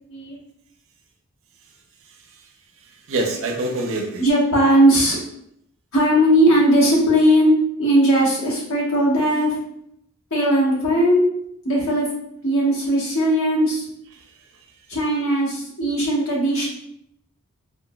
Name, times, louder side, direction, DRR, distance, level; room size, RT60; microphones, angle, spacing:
voice 1, 2.0-2.5 2.8-4.2 14.2-14.4, right 2 dB, 65° right, 3 dB, 0.6 m, -27 dB
voice 2, 4.2-5.2 5.9-9.6 10.3-11.2 11.6-12.1 12.4-13.9 14.9-16.7, equal, 65° left, -4 dB, 1.2 m, -18 dB
3.7 x 2.8 x 2.2 m, 0.74 s
head